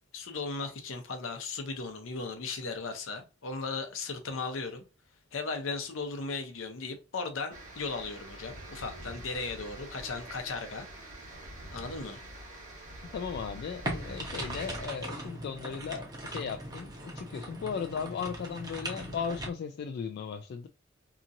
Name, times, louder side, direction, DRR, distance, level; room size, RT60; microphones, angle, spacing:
voice 1, 0.1-4.8 5.3-10.9 11.7-12.2, left 4 dB, 75° left, 0.7 m, -36 dB
sound 1, 7.5-14.9, right 1 dB, 40° right, 1.1 m, -45 dB
voice 2, 13.1-20.7, left 6 dB, 55° left, 0.3 m, -37 dB
sound 2, 13.8-19.5, right 1 dB, 20° right, 0.8 m, -39 dB
2.9 x 2.6 x 2.5 m
head